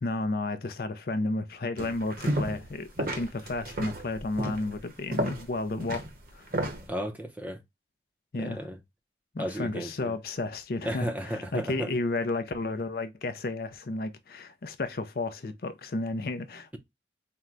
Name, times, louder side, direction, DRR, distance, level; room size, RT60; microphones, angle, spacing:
voice 1, 0.0-6.1 6.3-6.5 8.3-8.6 9.3-16.8, left 2 dB, 55° left, 0.5 m, -32 dB
sound 1, 1.8-2.7 3.0-6.9, right 1 dB, 50° right, 0.9 m, -32 dB
voice 2, 6.9-7.6 8.4-8.8 9.4-10.1 10.8-11.9, equal, 10° right, 0.6 m, -34 dB
4.4 x 2.1 x 3.7 m
head